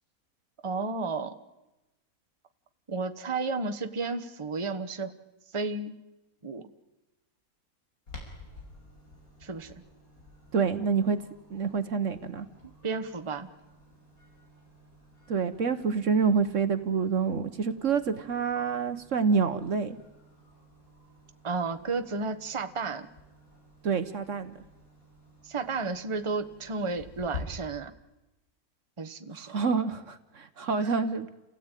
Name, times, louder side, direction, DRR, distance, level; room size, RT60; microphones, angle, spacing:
voice 1, 0.6-1.3 2.9-5.1 5.5-5.9 6.4-6.6 9.4-9.7 12.8-13.5 21.4-23.1 25.4-27.9 29.0-29.5 30.8-30.9, right 4 dB, 20° right, 8 dB, 1.1 m, -32 dB
Clock, 8.1-27.4, left 3 dB, 70° left, 6.6 m, -50 dB
voice 2, 10.5-11.2 11.5-12.5 15.3-20.0 23.8-24.5 29.3-31.3, right 5 dB, 55° right, 11 dB, 1.4 m, -27 dB
29.5 x 17.0 x 9.1 m, 1.0 s
omnidirectional pair, 1.6 m